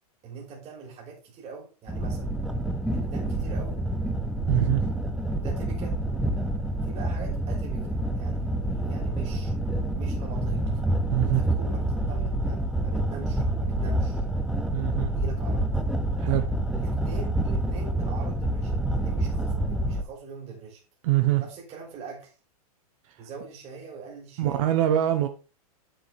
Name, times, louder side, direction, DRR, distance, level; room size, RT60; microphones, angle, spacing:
voice 1, 0.2-2.3 2.9-3.8 5.4-6.0 6.8-9.5 9.9-10.8 11.2-14.2 15.1-15.6 16.7-20.8 21.4-22.3 23.2-24.7, right 5 dB, 35° right, 3.4 m, -43 dB
sound 1, 1.9-20.0, right 1 dB, ahead, 0.9 m, -27 dB
voice 2, 4.5-4.8 11.1-11.4 14.7-15.1 16.2-16.4 21.0-21.4 24.4-25.3, right 13 dB, 60° right, 0.9 m, -23 dB
7.4 x 7.4 x 3.4 m
hypercardioid pair, 125°, 20 cm